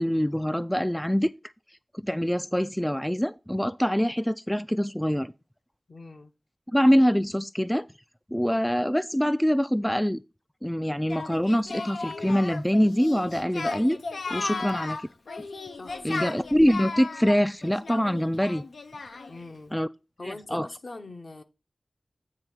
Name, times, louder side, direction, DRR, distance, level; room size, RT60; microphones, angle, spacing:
voice 1, 0.0-1.3 2.0-5.3 6.7-7.9 8.3-10.2 10.6-14.0 14.3-15.0 16.0-18.6 19.7-19.9 20.2-20.7, equal, 5° left, 0.3 m, -24 dB
voice 2, 5.9-6.3 15.8-16.2 19.3-19.7 20.2-21.4, left 2 dB, 60° left, 1.0 m, -42 dB
Singing, 11.1-19.4, left 3 dB, 85° left, 0.6 m, -35 dB
8.9 x 3.2 x 6.1 m
wide cardioid pair, 55°, 0 cm